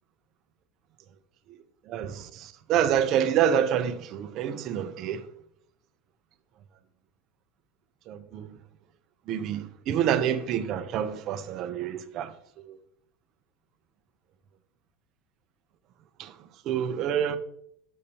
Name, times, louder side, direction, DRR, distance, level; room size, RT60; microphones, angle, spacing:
voice 1, 1.9-5.2 8.1-8.5 9.3-12.3 12.7-12.8 16.2-16.3 16.7-17.4, right 9 dB, 35° right, 0.5 m, -27 dB
6.8 x 6.3 x 2.8 m
supercardioid pair, 180°, 0 cm